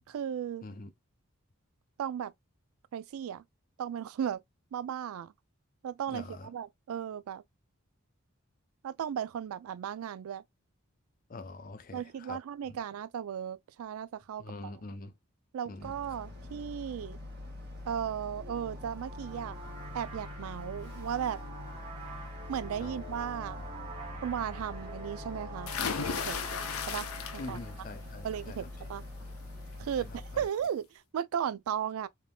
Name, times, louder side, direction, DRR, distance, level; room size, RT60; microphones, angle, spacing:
voice 1, 0.1-0.6 2.0-2.3 2.9-3.4 3.8-4.4 4.7-5.3 5.8-7.4 8.8-10.4 11.9-14.7 15.5-17.2 17.8-19.6 19.9-21.4 22.5-23.6 24.2-25.7 26.0-26.4 26.9-27.6 28.2-29.0 29.8-32.1, right 8 dB, 80° right, 0.3 m, -36 dB
voice 2, 6.1-6.5 11.3-12.4 12.7-12.8 14.4-15.1 15.7-15.9 22.8-22.9 27.4-28.7 30.0-30.5, left 2 dB, 40° left, 0.5 m, -44 dB
Boat Water vehicle, 15.8-30.5, left 2 dB, 50° right, 1.3 m, -44 dB
sound 1, 18.3-28.7, right 1 dB, 25° right, 1.0 m, -46 dB
sound 2, 25.7-27.7 28.1-28.6 30.0-30.1 30.5-30.6, left 6 dB, 85° left, 0.5 m, -35 dB
3.5 x 2.7 x 2.2 m
head